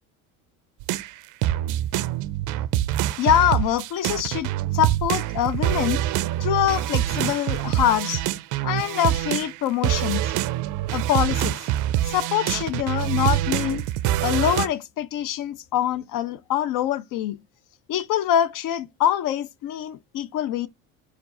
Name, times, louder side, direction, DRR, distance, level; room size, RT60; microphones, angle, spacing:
sound 1, 0.8-9.6 9.8-14.7, right 14 dB, 50° right, 0.4 m, -25 dB
voice 1, 3.2-6.0 6.4-8.2 8.6-10.3 10.9-11.7 12.1-13.8 14.2-17.4 17.9-20.7, left 11 dB, 50° left, 0.6 m, -24 dB
4.4 x 2.4 x 3.7 m
supercardioid pair, 80°, 42 cm